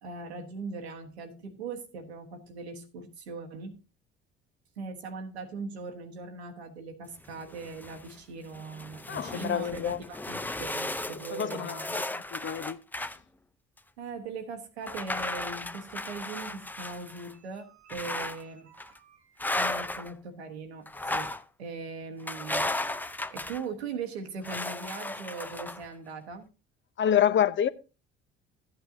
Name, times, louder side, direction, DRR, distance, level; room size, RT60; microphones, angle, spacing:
voice 1, 0.0-3.8 4.8-12.3 14.0-22.8 23.3-26.5, right 4 dB, 85° right, 1.2 m, -40 dB
sound 1, 7.2-8.1 8.5-13.2 13.8-13.9 14.8-17.3 17.9-18.4 18.8-19.0 19.4-20.1 20.9-21.4 22.3-23.6 24.4-25.8, left 2 dB, 5° left, 0.5 m, -35 dB
voice 2, 9.1-10.0 11.3-12.0 12.3-12.8 27.0-27.7, left 9 dB, 40° left, 0.7 m, -27 dB
13.5 x 8.8 x 2.6 m
hypercardioid pair, 55°, 31 cm